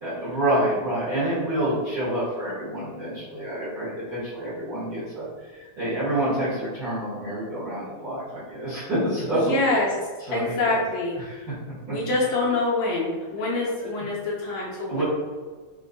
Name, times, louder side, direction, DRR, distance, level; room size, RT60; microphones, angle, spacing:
voice 1, 0.0-9.5 10.2-10.8 11.2-11.4 11.9-12.0 14.9-15.0, right 1 dB, 45° right, -12 dB, 1.4 m, -28 dB
voice 2, 9.3-9.9 10.3-11.2 11.9-15.0, left 2 dB, 75° left, -4 dB, 1.8 m, -25 dB
5.1 x 3.4 x 2.2 m, 1.4 s
omnidirectional pair, 3.4 m